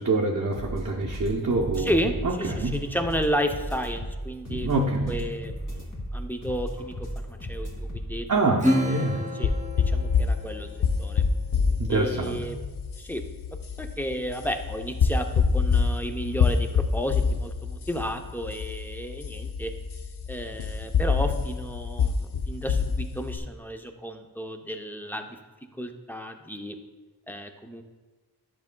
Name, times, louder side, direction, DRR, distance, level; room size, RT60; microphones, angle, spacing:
voice 1, 0.0-1.9 2.2-2.8 4.5-5.3 8.3-9.3 11.8-12.5, right 2 dB, 45° right, -2 dB, 0.7 m, -26 dB
sound 1, 0.5-8.3, equal, 50° left, 2.0 m, -35 dB
voice 2, 1.8-8.3 8.8-9.5 9.8-10.7 11.0-11.2 11.9-12.6 13.0-13.2 13.8-19.7 20.3-25.4 25.8-26.8 27.3-27.8, equal, 5° left, 5 dB, 0.6 m, -32 dB
Acoustic guitar / Strum, 8.6-11.5, equal, 20° right, 1.1 m, -29 dB
sound 2, 9.4-23.4, left 5 dB, 80° left, 0.6 m, -26 dB
10.5 x 6.0 x 2.2 m, 1.2 s
wide cardioid pair, 55°, 39 cm